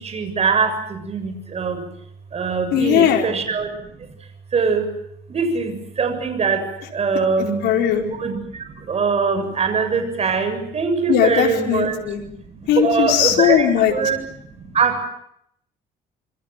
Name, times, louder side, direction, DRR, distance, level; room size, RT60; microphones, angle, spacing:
voice 1, 0.0-1.8 2.3-3.7 4.5-4.9 5.3-6.6 6.9-7.7 8.0-8.4 8.9-11.9 12.8-14.2 14.7-15.0, right 5 dB, 40° right, 8 dB, 7.1 m, -22 dB
voice 2, 2.7-3.3 7.6-8.0 11.1-12.2 12.7-14.0, left 10 dB, 80° left, 2 dB, 4.7 m, -18 dB
27.5 x 24.5 x 7.6 m, 0.73 s
cardioid pair, 110°, 17 cm